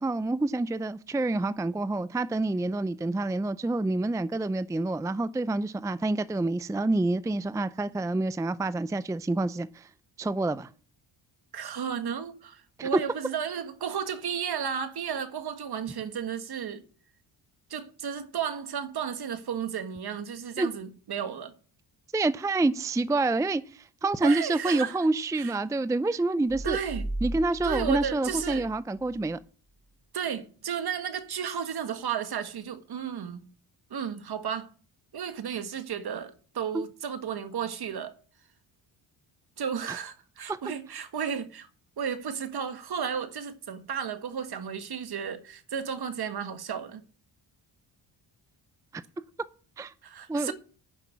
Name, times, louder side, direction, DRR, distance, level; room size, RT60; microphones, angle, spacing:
voice 1, 0.0-9.9 10.2-10.7 12.8-12.9 20.6-20.7 22.1-26.8 27.2-29.4 36.7-36.8 39.9-40.0 49.8-49.9 50.3-50.5, right 2 dB, 5° right, 0.5 m, -27 dB
voice 2, 11.5-16.8 17.7-21.5 24.2-25.0 25.4-25.5 26.6-27.1 27.6-28.7 30.1-33.4 33.9-34.7 35.1-38.1 39.6-41.7 42.0-47.0 50.0-50.5, right 7 dB, 55° right, 1.6 m, -33 dB
sound 1, 26.5-29.3, right 1 dB, 30° right, 2.9 m, -36 dB
10.0 x 6.0 x 8.4 m
cardioid pair, 85°, 45 cm